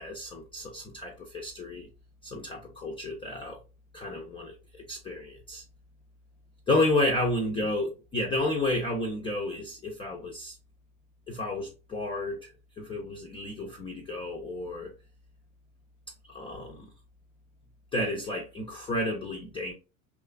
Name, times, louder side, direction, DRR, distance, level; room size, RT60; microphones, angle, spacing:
voice 1, 0.0-1.9 2.2-3.6 3.9-5.6 6.7-10.6 11.3-12.4 12.8-14.9 16.3-16.9 17.9-19.7, left 2 dB, 15° left, 0.4 m, -31 dB
3.0 x 2.3 x 2.3 m
figure-of-eight pair, 80°, 43 cm